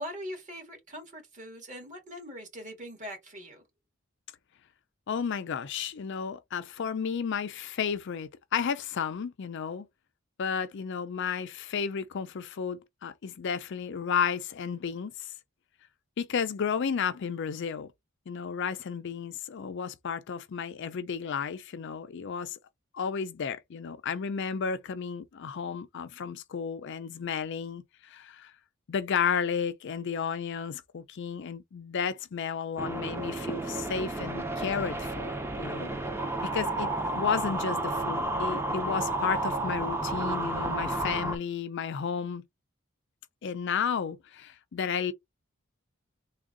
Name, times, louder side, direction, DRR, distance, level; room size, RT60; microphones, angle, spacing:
voice 1, 0.0-3.6, equal, 35° right, 1.8 m, -41 dB
voice 2, 5.1-9.9 10.4-15.3 16.2-17.9 18.3-22.6 22.9-28.5 28.9-36.0 36.4-42.4 43.4-45.1, left 6 dB, 60° left, 0.4 m, -32 dB
sound 1, 32.8-41.4, right 2 dB, 10° right, 0.6 m, -31 dB
3.6 x 2.3 x 3.7 m
head